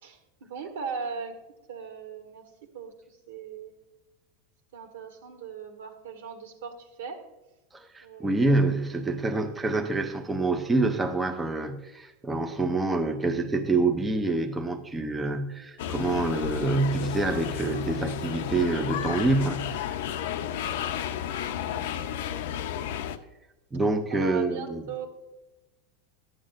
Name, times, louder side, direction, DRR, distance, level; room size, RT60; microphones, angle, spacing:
voice 1, 0.0-1.4 1.7-2.4 2.7-2.9 3.3-3.7 4.7-7.2 8.0-8.4 21.7-21.9 24.1-25.1, right 5 dB, 80° right, 5 dB, 1.7 m, -38 dB
voice 2, 7.7-20.0 23.7-24.8, right 2 dB, 10° right, 4 dB, 0.5 m, -26 dB
sound 1, 15.8-23.2, left 9 dB, 65° left, 0.6 m, -32 dB
12.0 x 8.8 x 2.5 m, 1.0 s
supercardioid pair, 170°, 0 cm